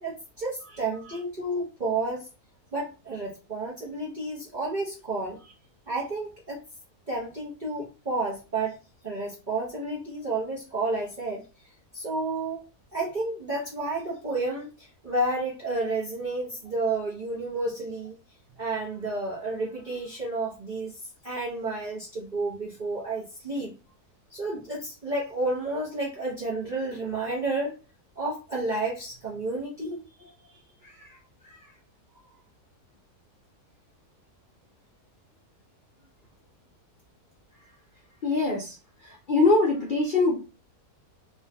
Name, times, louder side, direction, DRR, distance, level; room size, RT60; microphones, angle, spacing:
voice 1, 0.0-2.3 2.7-5.4 5.9-6.6 7.1-8.8 9.0-11.4 11.9-12.6 12.9-18.1 18.6-20.9 21.2-23.7 24.3-27.7 28.2-30.0, right 2 dB, 45° right, -6 dB, 0.6 m, -31 dB
voice 2, 30.8-31.2 31.4-31.6 38.2-38.8 39.0-40.4, left 3 dB, 80° left, -3 dB, 0.4 m, -24 dB
2.9 x 2.5 x 2.2 m, 0.31 s
omnidirectional pair, 1.7 m